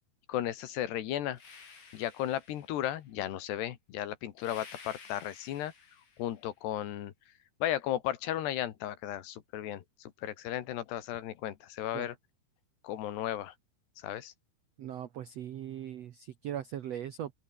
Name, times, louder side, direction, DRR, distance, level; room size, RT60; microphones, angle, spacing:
voice 1, 0.3-1.4 1.9-5.7 6.2-7.1 7.6-12.2 12.8-13.5 14.0-14.3, left 12 dB, 90° left, 3.9 m, -35 dB
sound 1, 1.3-3.0 4.4-6.4, left 5 dB, 55° left, 6.3 m, -53 dB
voice 2, 14.8-17.3, right 10 dB, 75° right, 1.5 m, -39 dB
open air
omnidirectional pair, 4.6 m